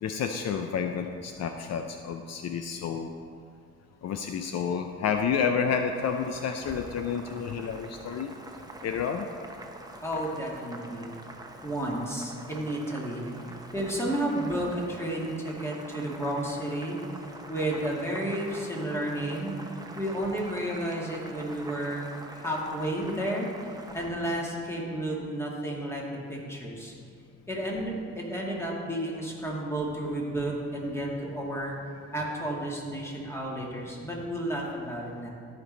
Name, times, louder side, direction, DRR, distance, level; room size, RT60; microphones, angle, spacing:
voice 1, 0.0-3.1 4.0-8.3 8.8-9.3 13.4-13.5, left 6 dB, 60° left, 6 dB, 0.6 m, -30 dB
Boiling, 5.9-24.1, right 2 dB, 15° right, 0.9 m, -45 dB
voice 2, 10.0-11.1 11.6-13.3 13.7-17.0 17.5-19.6 20.0-23.5 23.9-26.9 27.5-31.8 32.1-35.3, right 1 dB, 10° left, -3 dB, 2.1 m, -32 dB
13.5 x 5.3 x 4.1 m, 2.3 s
cardioid pair, 90°, 30 cm